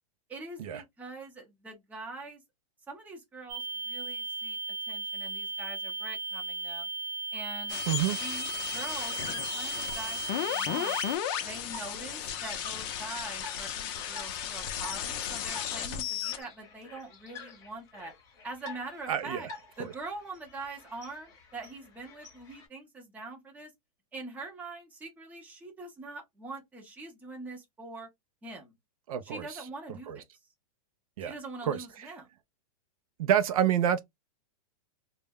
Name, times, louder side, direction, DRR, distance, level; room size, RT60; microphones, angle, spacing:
voice 1, 0.3-2.4 2.9-4.6 4.9-6.9 7.3-7.8 8.2-11.0 11.4-18.1 18.4-19.5 19.8-23.7 24.1-28.1 28.4-28.7 29.2-30.2 31.2-32.3, right 3 dB, 10° right, 0.7 m, -43 dB
sound 1, 3.5-11.2, right 4 dB, 50° right, 0.8 m, -36 dB
sound 2, 7.7-16.4, left 10 dB, 40° left, 0.5 m, -35 dB
sound 3, 7.8-22.7, left 3 dB, 20° left, 0.9 m, -50 dB
voice 2, 7.9-8.2 19.1-19.4 29.1-29.5 30.1-30.2 31.2-31.4 31.7-31.8 33.2-34.0, right 10 dB, 70° right, 0.5 m, -27 dB
2.2 x 2.1 x 3.4 m
supercardioid pair, 155°, 19 cm